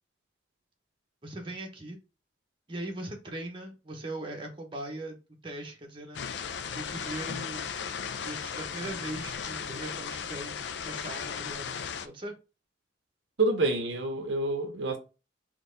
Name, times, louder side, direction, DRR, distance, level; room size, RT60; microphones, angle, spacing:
voice 1, 1.2-2.0 2.7-5.2 5.4-6.2 6.7-7.7 8.2-12.4, right 1 dB, 25° right, 0.9 m, -40 dB
sound 1, 6.1-12.1, left 6 dB, 65° left, 0.4 m, -36 dB
voice 2, 13.4-15.0, right 2 dB, 70° right, 0.7 m, -27 dB
4.3 x 3.0 x 3.7 m
head